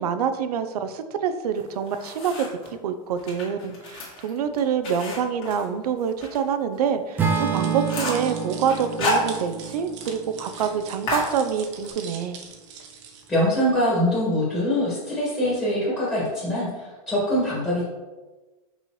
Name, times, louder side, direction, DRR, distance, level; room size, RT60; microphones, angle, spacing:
voice 1, 0.0-2.5 2.8-12.4, right 7 dB, 85° right, 10 dB, 0.6 m, -26 dB
sound 1, 1.6-2.7 3.2-6.4 6.7-6.8 7.2-7.3 7.6-8.3 8.7-9.8 10.1-10.2 10.5-10.7 11.1-11.9, left 2 dB, 30° left, 1.9 m, -31 dB
Acoustic guitar / Strum, 7.2-11.4, right 6 dB, 10° right, 0.4 m, -29 dB
sound 2, 7.3-13.3, right 6 dB, 50° right, 0.9 m, -42 dB
voice 2, 13.3-17.8, equal, 10° left, -9 dB, 1.8 m, -23 dB
5.5 x 5.5 x 3.1 m, 1.2 s
supercardioid pair, 165°, 19 cm